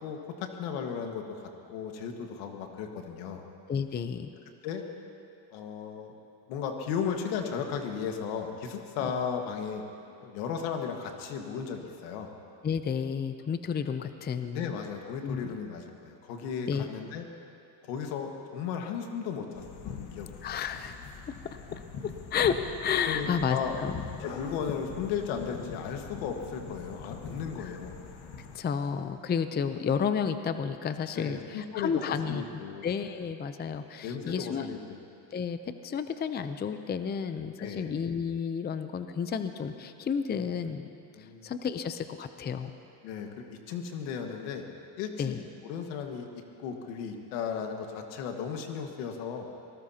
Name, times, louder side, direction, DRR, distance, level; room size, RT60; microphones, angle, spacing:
voice 1, 0.0-3.4 4.6-4.8 5.5-6.1 6.5-9.8 10.2-12.3 14.5-17.3 17.8-20.3 23.0-23.7 24.2-28.0 31.2-32.9 34.0-35.0 37.6-37.9 41.2-41.5 43.0-44.7 45.0-45.1 45.6-46.3 46.6-49.5, left 7 dB, 85° left, 4 dB, 1.7 m, -35 dB
voice 2, 3.7-4.3 12.6-14.7 15.2-15.5 16.7-16.9 20.4-21.0 21.4-24.3 27.6-27.8 28.4-32.4 32.8-34.7 35.3-40.8 41.2-42.7 45.2-45.5, left 7 dB, 20° left, 10 dB, 0.6 m, -31 dB
sound 1, 19.5-28.6, left 5 dB, 50° left, 1.7 m, -43 dB
24.0 x 19.0 x 2.9 m, 2.8 s
supercardioid pair, 105°, 49 cm